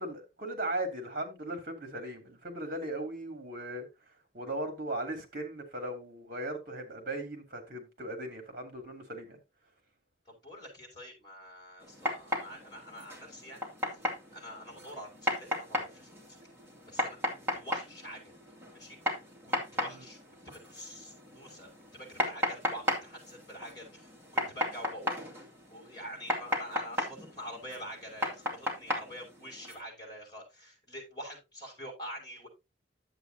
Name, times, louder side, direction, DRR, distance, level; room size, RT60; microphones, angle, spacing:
voice 1, 0.0-3.9 4.3-9.4 19.8-20.0, right 1 dB, 50° right, 2.7 m, -38 dB
voice 2, 10.3-13.7 14.3-16.1 16.9-18.3 18.7-19.0 19.4-20.2 20.4-25.3 25.7-32.5, equal, 25° left, 5.5 m, -46 dB
sound 1, 11.8-29.7, left 1 dB, 15° right, 2.4 m, -36 dB
10.5 x 8.1 x 2.9 m
head